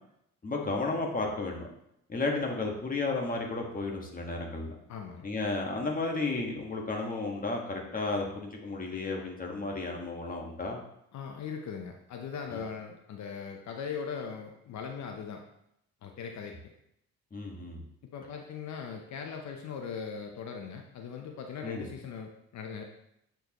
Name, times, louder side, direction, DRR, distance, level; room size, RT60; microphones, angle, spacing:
voice 1, 0.4-1.7 2.1-4.8 5.2-10.8 12.5-12.6 17.3-17.8 21.6-21.9, left 3 dB, 30° left, 0 dB, 1.5 m, -33 dB
voice 2, 4.9-5.3 11.1-15.4 16.0-16.5 18.1-22.8, left 6 dB, 65° left, 3 dB, 0.8 m, -39 dB
7.8 x 4.6 x 3.0 m, 0.78 s
cardioid pair, 90°, 30 cm